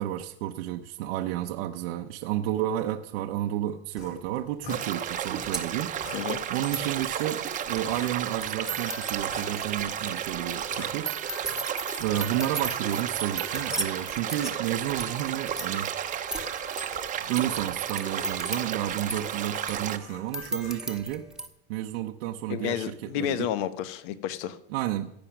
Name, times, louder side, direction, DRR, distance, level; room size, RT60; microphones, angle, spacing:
voice 1, 0.0-5.9 6.5-11.6 12.0-16.1 17.3-21.3 21.7-23.5 24.7-25.1, right 13 dB, 65° right, 0.9 m, -31 dB
sound 1, 4.0-4.9 5.3-5.5 6.0-6.2 6.7-7.0 7.6-8.1 8.6-8.9 9.2-11.0 11.4-11.7 12.0-12.4 12.7-13.1 13.5-20.9, left 6 dB, 40° left, 4.2 m, -45 dB
sound 2, 4.0-4.1 4.8-4.9 5.1-21.5, right 2 dB, ahead, 1.2 m, -38 dB
sound 3, 4.7-20.0, right 9 dB, 25° right, 0.9 m, -33 dB
voice 2, 22.5-24.6, left 11 dB, 55° left, 1.1 m, -31 dB
15.5 x 9.0 x 6.0 m
supercardioid pair, 140°, 32 cm